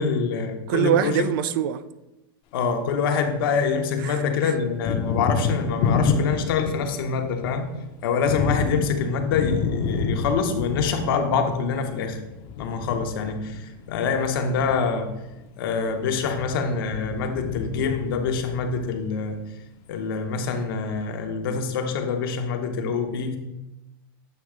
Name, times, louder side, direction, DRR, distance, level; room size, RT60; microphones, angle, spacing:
voice 1, 0.0-1.3 2.5-7.7 8.0-12.2 12.6-15.1 15.6-19.4 19.9-23.4, left 5 dB, 75° left, 0.9 m, -25 dB
voice 2, 0.7-1.8 4.0-4.5, right 10 dB, 65° right, 0.4 m, -24 dB
Thunder, 2.6-3.8 4.1-19.3, left 5 dB, 45° left, 0.7 m, -29 dB
7.6 x 2.9 x 4.8 m
supercardioid pair, 145°, 12 cm